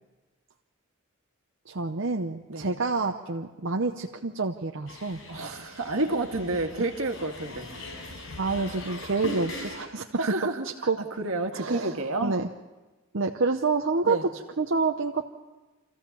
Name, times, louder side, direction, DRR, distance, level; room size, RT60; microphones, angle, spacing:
voice 1, 1.7-5.2 5.6-5.8 8.4-10.1 10.8-11.0 11.5-12.5 13.1-15.2, right 3 dB, 60° right, 2 dB, 0.8 m, -28 dB
sound 1, 4.9-9.9, left 1 dB, 70° left, 4.9 m, -40 dB
voice 2, 5.3-7.7 10.2-10.7 11.2-12.4 14.1-14.2, right 2 dB, 80° right, 4 dB, 1.7 m, -29 dB
27.0 x 15.0 x 7.0 m, 1.2 s
head